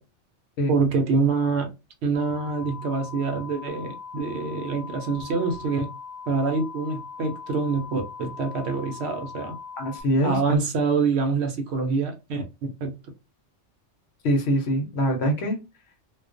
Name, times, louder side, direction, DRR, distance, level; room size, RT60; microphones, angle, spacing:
voice 1, 0.7-1.7 2.0-5.9 6.3-9.5 10.2-13.0, right 4 dB, 70° right, 0.8 m, -26 dB
sound 1, 2.1-10.0, left 5 dB, 35° right, 0.7 m, -40 dB
voice 2, 9.8-10.6 14.2-15.6, equal, 65° left, 0.9 m, -24 dB
2.3 x 2.2 x 2.4 m
omnidirectional pair, 1.2 m